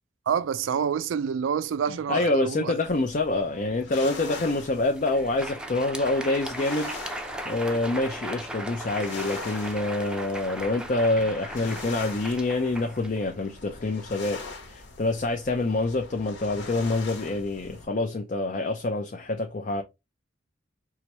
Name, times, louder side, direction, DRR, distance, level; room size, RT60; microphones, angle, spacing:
voice 1, 0.3-2.7, right 7 dB, 85° right, 0.3 m, -27 dB
voice 2, 2.1-7.0 7.4-14.4 14.7-19.8, left 2 dB, 45° left, 0.5 m, -26 dB
sound 1, 2.8-17.9, left 3 dB, 90° left, 1.5 m, -43 dB
Crowd, 4.9-13.8, right 1 dB, 5° right, 0.5 m, -37 dB
4.7 x 3.1 x 2.9 m
head